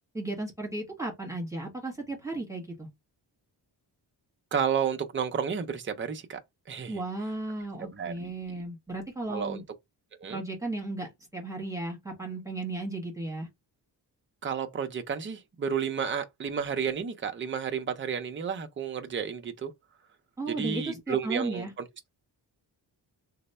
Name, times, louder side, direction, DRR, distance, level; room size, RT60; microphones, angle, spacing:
voice 1, 0.1-2.9 6.9-9.6 10.3-13.5 20.4-21.7, right 2 dB, 5° right, 1.4 m, -35 dB
voice 2, 4.5-6.4 6.7-7.0 7.9-8.3 9.3-9.6 10.2-10.4 14.4-19.7 20.5-21.7, right 7 dB, 30° right, 0.5 m, -31 dB
3.1 x 2.0 x 4.1 m
wide cardioid pair, 150°, 43 cm